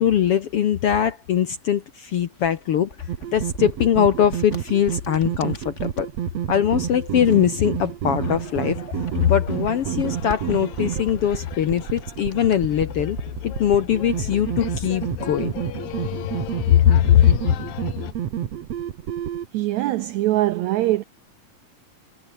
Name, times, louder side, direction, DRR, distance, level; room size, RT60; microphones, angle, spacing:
voice 1, 0.0-2.9 3.3-6.1 6.5-8.8 9.2-13.2 13.4-15.5 16.7-17.3, left 10 dB, 65° left, 1.5 m, -21 dB
sound 1, 2.3-6.2 6.9-8.2 8.5-12.6, left 3 dB, 20° left, 2.5 m, -42 dB
sound 2, 3.1-19.5, right 10 dB, 55° right, 2.3 m, -30 dB
sound 3, 8.2-18.1, left 14 dB, 90° left, 2.9 m, -36 dB
voice 2, 19.5-21.0, right 16 dB, 80° right, 1.6 m, -22 dB
omnidirectional pair, 3.9 m